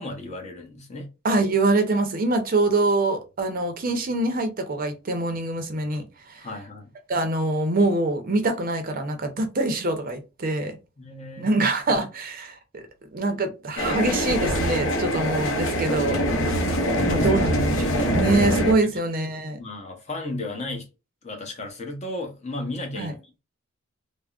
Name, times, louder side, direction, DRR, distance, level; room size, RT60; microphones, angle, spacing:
voice 1, 0.0-1.1 6.4-6.9 11.0-11.7 16.7-17.3 18.8-19.0 19.6-20.9 21.2-23.4, left 2 dB, 35° left, 0.7 m, -35 dB
voice 2, 1.2-6.5 7.1-10.8 11.4-12.6 13.1-16.2 17.0-19.6 23.0-23.1, right 2 dB, 45° right, 0.6 m, -24 dB
sound 1, 13.8-18.7, equal, 70° left, 0.7 m, -23 dB
3.4 x 2.0 x 2.3 m
head